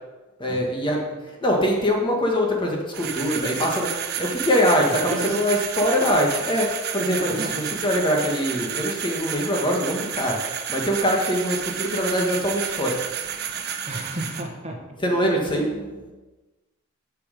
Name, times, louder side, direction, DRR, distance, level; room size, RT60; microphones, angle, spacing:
voice 1, 0.4-1.0 1.4-6.7 6.9-10.4 10.7-13.0 15.0-16.1, equal, 25° left, 0 dB, 1.5 m, -23 dB
sound 1, 2.9-14.4, right 8 dB, 50° right, 0.8 m, -31 dB
voice 2, 5.0-5.4 7.3-7.9 13.9-14.8, right 1 dB, 30° right, 1 dB, 1.3 m, -33 dB
9.6 x 6.3 x 5.2 m, 1.2 s
head